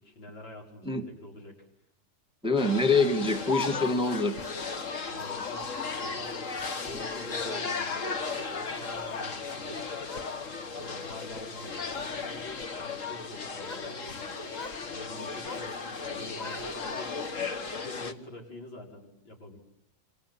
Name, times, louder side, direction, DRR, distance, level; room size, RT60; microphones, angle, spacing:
voice 1, 0.0-1.7 5.1-6.5 6.8-9.8 10.6-17.3 17.7-19.6, left 1 dB, 75° left, 1 dB, 6.3 m, -46 dB
voice 2, 2.4-4.4, left 3 dB, 5° right, 5 dB, 1.6 m, -25 dB
sound 1, 2.6-18.1, left 4 dB, 45° left, 1.8 m, -36 dB
Speech, 3.0-4.1 5.3-5.7 6.7-7.8 8.5-9.3 9.6-10.3 10.7-11.1 11.7-12.1 13.2-13.9 14.2-14.8 15.1-15.7 16.0-17.3, left 4 dB, 25° left, 1.1 m, -42 dB
28.5 x 25.5 x 7.6 m, 0.78 s
omnidirectional pair, 2.1 m